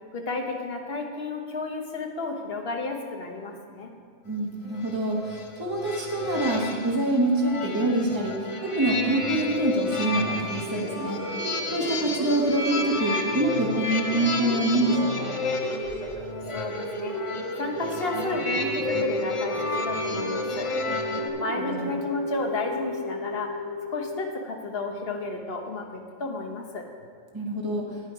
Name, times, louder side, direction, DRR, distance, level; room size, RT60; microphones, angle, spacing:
voice 1, 0.1-3.9 16.5-20.7 21.4-23.6 23.9-26.9, left 3 dB, 55° left, 3 dB, 1.3 m, -32 dB
voice 2, 4.2-11.2 11.7-15.3 21.6-21.9 27.3-27.8, right 1 dB, 20° right, -1 dB, 1.2 m, -26 dB
sound 1, 4.7-21.3, left 3 dB, 35° left, 0.6 m, -32 dB
sound 2, 10.5-24.2, right 1 dB, 85° right, 1.4 m, -34 dB
9.4 x 9.3 x 4.7 m, 2.2 s
omnidirectional pair, 1.2 m